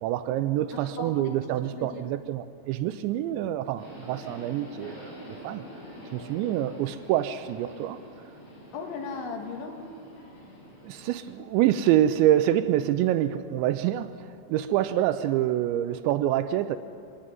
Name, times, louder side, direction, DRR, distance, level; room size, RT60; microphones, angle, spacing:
voice 1, 0.0-5.7 6.1-8.0 10.8-16.8, right 12 dB, 80° right, 11 dB, 2.7 m, -26 dB
voice 2, 0.7-1.3 1.7-2.0 8.7-9.8, left 4 dB, 75° left, 3 dB, 4.2 m, -37 dB
Subway metro underground, 3.8-11.3, equal, 55° left, 8.2 m, -46 dB
27.5 x 11.0 x 9.0 m, 2.4 s
omnidirectional pair, 5.5 m